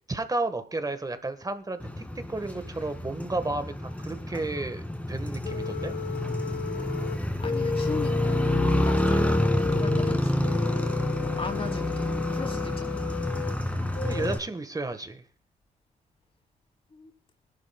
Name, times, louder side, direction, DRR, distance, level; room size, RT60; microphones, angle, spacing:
voice 1, 0.1-4.8 5.1-6.0 14.0-15.2, right 2 dB, 20° right, 10 dB, 1.6 m, -32 dB
Motorcycle, 1.8-14.4, left 1 dB, 10° left, 2.3 m, -28 dB
sound 1, 5.4-13.6 13.9-14.4, left 5 dB, 70° left, 1.3 m, -33 dB
voice 2, 7.1-10.3 10.6-13.0 16.9-17.1, left 3 dB, 35° left, 3 dB, 3.8 m, -39 dB
20.5 x 11.0 x 2.4 m, 0.41 s
supercardioid pair, 60°, 17 cm